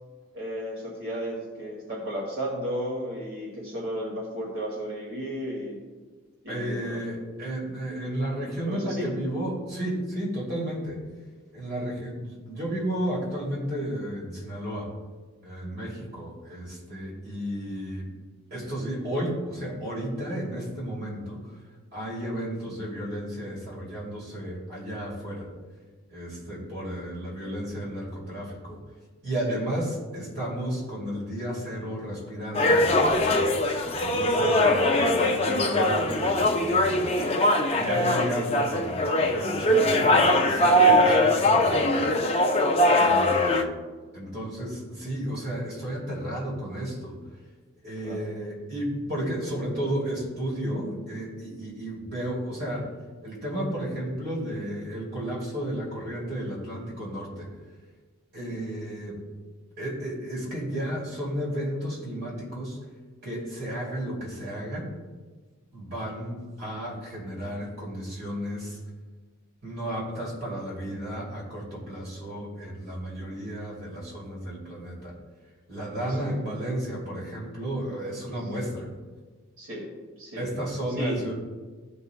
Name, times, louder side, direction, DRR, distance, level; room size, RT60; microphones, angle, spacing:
voice 1, 0.3-5.8 6.4-7.0 8.6-9.1 15.8-16.0 29.5-29.6 37.7-38.2 42.9-43.3 48.0-48.2 76.1-76.3 79.6-79.9 80.2-80.4 81.0-81.2, equal, 70° right, -4 dB, 2.0 m, -34 dB
voice 2, 6.5-11.0 11.5-14.9 15.4-18.1 18.5-21.4 21.9-25.5 26.1-28.8 29.2-33.6 34.0-37.1 37.7-42.2 43.0-43.7 44.1-47.2 47.8-52.9 53.2-57.5 58.3-59.2 59.8-62.8 63.2-64.9 65.7-68.8 69.6-75.1 75.7-78.9 80.4-81.3, right 1 dB, 50° right, -4 dB, 2.7 m, -33 dB
sound 1, 32.5-43.6, left 1 dB, 30° left, 0.6 m, -21 dB
15.5 x 5.5 x 2.2 m, 1.4 s
head